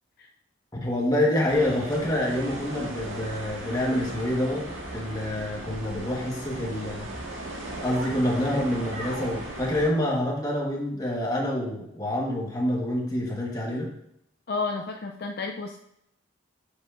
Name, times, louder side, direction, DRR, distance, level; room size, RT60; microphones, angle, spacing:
voice 1, 0.8-7.1 7.8-13.9, left 1 dB, 20° left, -2 dB, 1.3 m, -27 dB
sound 1, 1.5-9.9, right 1 dB, 80° right, 1.8 m, -37 dB
voice 2, 14.5-15.8, left 4 dB, 50° left, 2 dB, 0.5 m, -31 dB
8.3 x 6.9 x 2.5 m, 0.76 s
head